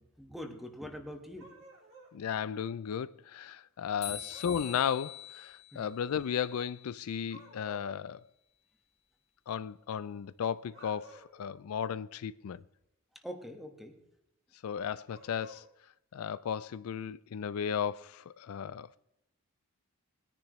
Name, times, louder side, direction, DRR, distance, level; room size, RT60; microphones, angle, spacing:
voice 1, 0.2-1.5 4.1-4.2 5.7-5.9 13.2-14.0, equal, ahead, 1.5 m, -44 dB
sound 1, 1.4-2.2 4.3-5.2 7.3-7.9 10.6-11.4 15.1-15.6, right 1 dB, 65° right, 4.8 m, -54 dB
voice 2, 2.1-8.2 9.5-12.6 14.6-15.7 16.1-19.0, left 8 dB, 75° left, 0.4 m, -35 dB
sound 2, 4.0-7.1, left 9 dB, 30° left, 2.0 m, -45 dB
20.5 x 10.0 x 3.1 m
head